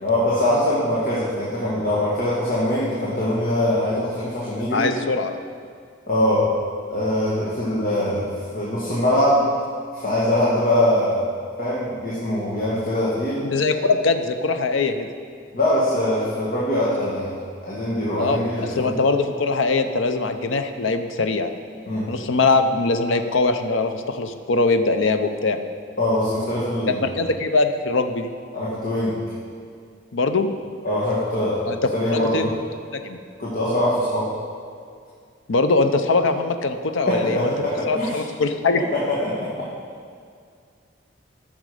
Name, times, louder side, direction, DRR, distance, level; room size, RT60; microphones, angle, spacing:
voice 1, 0.0-4.9 6.1-6.5 6.9-8.3 8.5-9.5 9.9-11.3 11.6-13.4 15.5-18.9 21.8-22.1 26.0-27.3 28.5-29.2 30.8-32.5 33.4-34.3 37.1-38.2 38.9-39.5, left 1 dB, 45° left, -7 dB, 1.6 m, -22 dB
voice 2, 4.7-5.3 13.4-15.1 18.2-21.5 22.1-25.6 26.9-28.3 30.1-30.5 31.7-31.8 32.1-32.5 32.9-33.2 35.5-37.5 37.9-38.8, left 3 dB, 90° left, 7 dB, 0.6 m, -22 dB
13.0 x 6.3 x 5.0 m, 2.2 s
head